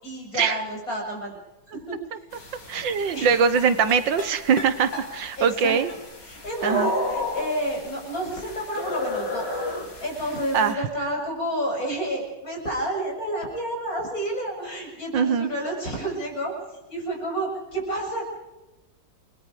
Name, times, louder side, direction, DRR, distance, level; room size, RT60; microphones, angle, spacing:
voice 1, 0.0-1.4 1.7-2.7 3.1-3.3 5.4-5.8 6.2-9.6 10.0-16.5 16.9-18.2, right 1 dB, 50° left, 0 dB, 7.7 m, -30 dB
sound 1, 2.3-10.7, left 1 dB, 70° left, 4.2 m, -33 dB
voice 2, 2.7-5.9 6.6-6.9 10.5-10.8 15.1-15.5, right 6 dB, 85° right, 12 dB, 1.9 m, -22 dB
29.5 x 20.5 x 5.0 m, 1.0 s
omnidirectional pair, 1.9 m